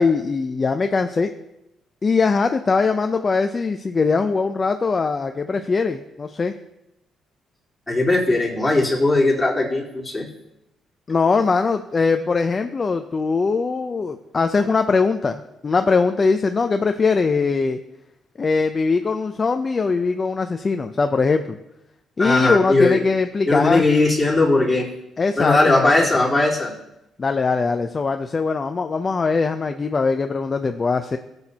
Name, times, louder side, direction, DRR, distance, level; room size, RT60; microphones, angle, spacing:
voice 1, 0.0-1.3 2.0-6.5 11.1-17.8 18.4-21.6 22.2-23.9 25.2-26.2 27.2-31.2, left 4 dB, 35° left, 7 dB, 0.6 m, -21 dB
voice 2, 7.9-10.3 22.2-23.0 23.5-24.9 25.4-26.7, left 2 dB, 15° left, -6 dB, 4.0 m, -18 dB
16.0 x 8.0 x 2.9 m, 0.89 s
cardioid pair, 90°, 0 cm